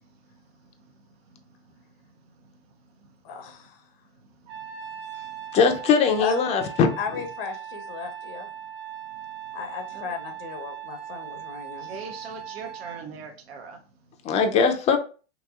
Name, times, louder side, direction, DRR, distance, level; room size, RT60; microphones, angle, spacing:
voice 1, 3.2-3.8 6.2-6.4 7.0-8.5 9.5-11.9, left 5 dB, 70° left, 0.7 m, -35 dB
Trumpet, 4.5-13.0, right 9 dB, 60° right, 1.3 m, -39 dB
voice 2, 5.5-6.9 14.2-15.0, left 5 dB, 20° left, 0.4 m, -20 dB
voice 3, 11.8-13.8, right 5 dB, 85° right, 0.7 m, -40 dB
2.9 x 2.5 x 2.3 m
hypercardioid pair, 110°, 30 cm